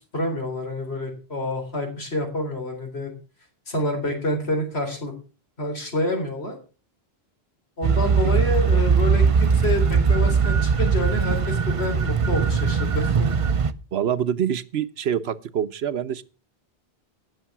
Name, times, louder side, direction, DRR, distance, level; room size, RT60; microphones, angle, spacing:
voice 1, 0.1-3.1 3.7-5.1 5.6-6.6 7.8-13.3, left 1 dB, 80° left, 3 dB, 4.1 m, -28 dB
sound 1, 7.8-13.7, right 5 dB, 40° right, 0.6 m, -20 dB
voice 2, 13.9-16.2, right 9 dB, 75° right, 13 dB, 1.1 m, -25 dB
17.5 x 6.8 x 6.0 m, 0.36 s
omnidirectional pair, 1.1 m